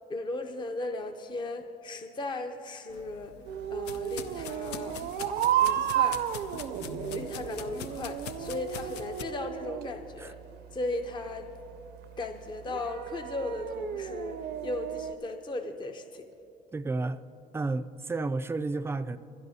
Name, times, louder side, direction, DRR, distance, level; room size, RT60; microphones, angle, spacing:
voice 1, 0.1-3.4 3.7-5.0 5.6-6.2 7.0-10.4 10.7-11.5 12.2-16.3, left 2 dB, 25° left, 0.6 m, -36 dB
sound 1, 2.9-9.2, left 8 dB, 85° left, 0.6 m, -43 dB
sound 2, 3.4-15.1, right 11 dB, 75° right, 0.6 m, -33 dB
voice 2, 16.7-17.2 17.5-19.2, right 3 dB, 15° right, 0.4 m, -31 dB
27.5 x 11.5 x 2.7 m
cardioid pair, 110°, 17 cm